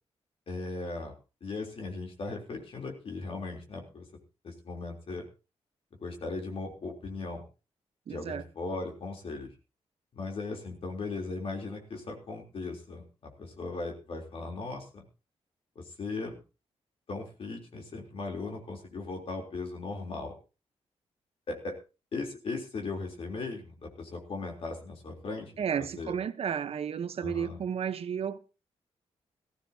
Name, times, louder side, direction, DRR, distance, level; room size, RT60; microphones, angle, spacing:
voice 1, 0.5-1.1 1.4-4.1 4.4-5.2 6.0-7.4 8.1-9.5 10.1-15.0 15.8-16.4 17.1-20.3 21.5-21.8 22.1-26.2 27.2-27.6, left 3 dB, 55° left, 3.7 m, -38 dB
voice 2, 8.1-8.4 25.6-28.4, right 8 dB, 65° right, 1.1 m, -32 dB
18.5 x 15.0 x 2.9 m
cardioid pair, 105°, 11 cm